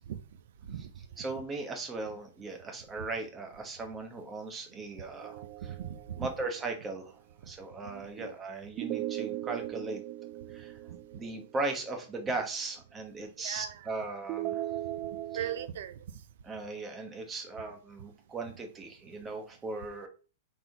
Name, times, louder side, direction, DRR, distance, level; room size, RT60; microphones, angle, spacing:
voice 1, 1.2-5.4 6.2-7.2 7.5-10.0 10.5-10.8 11.1-14.6 16.5-20.1, right 3 dB, 15° right, 1.3 m, -38 dB
sound 1, 5.2-6.8 8.8-11.9 14.3-15.7, right 14 dB, 30° right, 0.3 m, -38 dB
voice 2, 5.6-6.3 7.8-8.3 12.3-12.4 13.4-13.9 15.3-16.0, right 10 dB, 65° right, 0.7 m, -39 dB
6.1 x 3.7 x 4.6 m
supercardioid pair, 165°, 0 cm